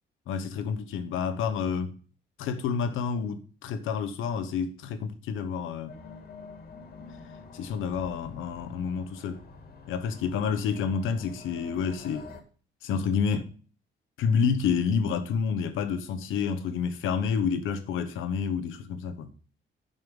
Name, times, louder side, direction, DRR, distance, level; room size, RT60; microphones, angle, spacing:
voice 1, 0.3-2.0 2.4-5.9 7.5-9.4 9.9-12.3 12.8-13.5 14.2-19.3, left 6 dB, 90° left, 1.1 m, -29 dB
sound 1, 5.9-12.4, left 4 dB, 50° left, 2.0 m, -47 dB
9.4 x 5.6 x 5.4 m
cardioid pair, 90°, 20 cm